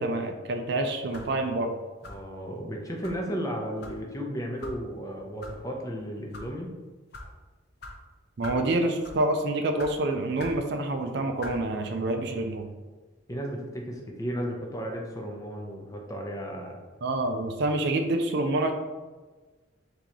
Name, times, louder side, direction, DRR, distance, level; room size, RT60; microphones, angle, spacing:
voice 1, 0.0-1.7 8.4-12.7 17.0-18.7, right 2 dB, 55° right, 5 dB, 0.4 m, -27 dB
sound 1, 1.1-1.4 2.0-2.3 3.0-3.2 3.8-4.0 4.6-4.8 5.4-5.5 6.2-6.5 7.1-7.3 7.8-7.9 8.4-8.6 9.0-9.3 9.8-9.9 10.4-10.6 11.4-11.6, left 2 dB, 55° left, 0.7 m, -42 dB
voice 2, 2.0-6.8 13.3-16.8, equal, 15° left, 0 dB, 0.6 m, -34 dB
3.8 x 2.8 x 4.5 m, 1.3 s
head